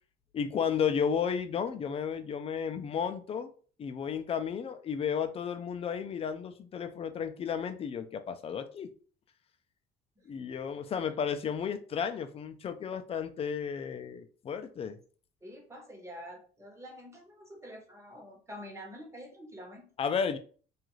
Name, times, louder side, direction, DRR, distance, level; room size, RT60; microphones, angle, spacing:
voice 1, 0.3-3.5 3.8-8.9 10.3-15.0 20.0-20.4, left 7 dB, 35° left, 9 dB, 0.4 m, -33 dB
voice 2, 15.4-19.9, equal, 15° right, 2 dB, 0.8 m, -47 dB
2.5 x 2.4 x 3.0 m, 0.42 s
cardioid pair, 110°, 17 cm